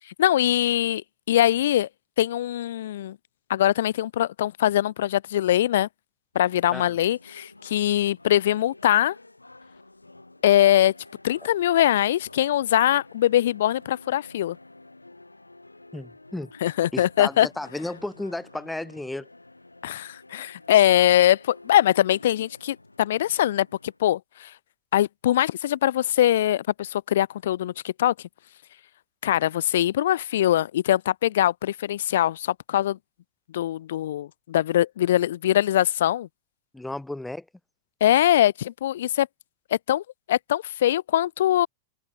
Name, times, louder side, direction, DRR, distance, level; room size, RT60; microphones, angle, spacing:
voice 1, 0.2-1.9 2.2-3.2 3.5-5.9 6.4-9.2 10.4-10.9 11.2-14.6 16.6-17.5 19.8-24.5 24.9-28.1 29.2-33.0 33.5-36.3 38.0-39.3 39.7-41.7, left 12 dB, 60° left, 0.4 m, -22 dB
sound 1, 6.3-24.0, left 2 dB, 85° left, 3.1 m, -50 dB
voice 2, 15.9-16.5 16.9-19.3 36.7-37.5, left 2 dB, 5° left, 1.8 m, -33 dB
figure-of-eight pair, 90°, 0 cm